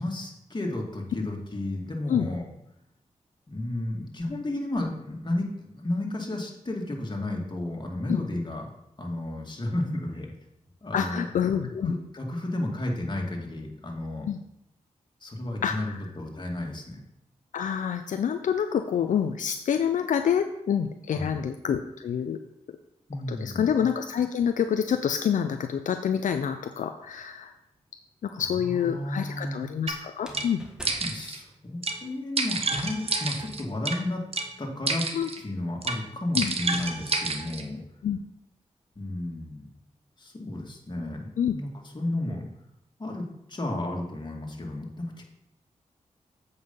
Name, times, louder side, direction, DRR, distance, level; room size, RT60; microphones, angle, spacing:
voice 1, 0.0-2.5 3.5-8.6 9.0-10.3 10.8-11.3 11.8-14.3 15.2-17.0 21.1-21.5 23.1-23.7 28.3-29.6 31.0-34.2 34.6-35.1 35.4-37.8 39.0-39.7 40.2-41.7 41.9-42.4 43.0-45.2, left 1 dB, 35° left, 0 dB, 2.3 m, -32 dB
voice 2, 10.9-11.9 14.2-14.4 15.6-16.0 17.5-22.4 23.3-27.5 28.2-30.6 35.1-35.3 36.3-36.5 38.0-38.2 41.4-41.6, left 8 dB, 80° left, 7 dB, 0.5 m, -27 dB
sound 1, 27.0-27.7 30.1-32.1, equal, 5° right, 1.7 m, -47 dB
sound 2, 29.9-30.0 30.3-30.5 30.8-31.4 31.8-32.0 32.4-34.0 34.3-34.5 34.9-35.4 35.8-36.0 36.4-37.6, right 3 dB, 50° right, 1.1 m, -29 dB
8.0 x 5.4 x 5.5 m, 0.80 s
cardioid pair, 55°, 13 cm